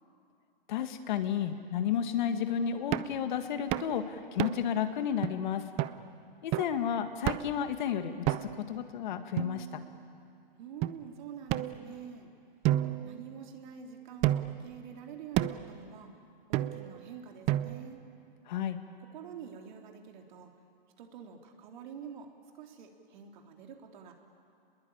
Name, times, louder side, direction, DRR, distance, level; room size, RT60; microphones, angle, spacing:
voice 1, 0.7-5.6 6.4-8.3 8.7-9.8 18.5-18.8, left 8 dB, 55° left, 8 dB, 1.9 m, -32 dB
sound 1, 2.9-3.2 3.7-3.9 4.4-4.8 5.2-5.3 5.8-6.0 6.5-6.8 7.3-7.6 8.3-8.7 9.4-10.1 10.8-10.9 11.5-12.2 12.6-13.7 14.2-14.7 15.4-15.7 16.5-17.0 17.5-18.0, right 14 dB, 20° right, 0.6 m, -31 dB
voice 2, 10.6-12.3 13.0-16.1 16.5-18.0 19.0-20.5 21.0-24.1, right 7 dB, 55° right, 2 dB, 3.6 m, -47 dB
29.0 x 21.5 x 8.8 m, 2.4 s
hypercardioid pair, 135°, 29 cm